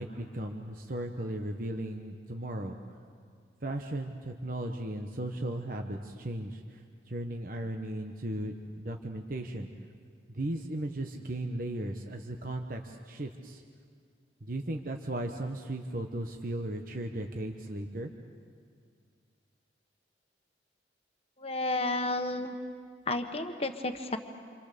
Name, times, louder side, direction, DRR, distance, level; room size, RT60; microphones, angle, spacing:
voice 1, 0.0-2.8 3.6-9.7 10.3-13.6 14.4-18.1, right 1 dB, 45° right, 3 dB, 1.1 m, -36 dB
voice 2, 21.4-22.6 23.1-24.2, left 2 dB, 30° left, 6 dB, 1.4 m, -31 dB
27.5 x 27.0 x 6.8 m, 2.1 s
head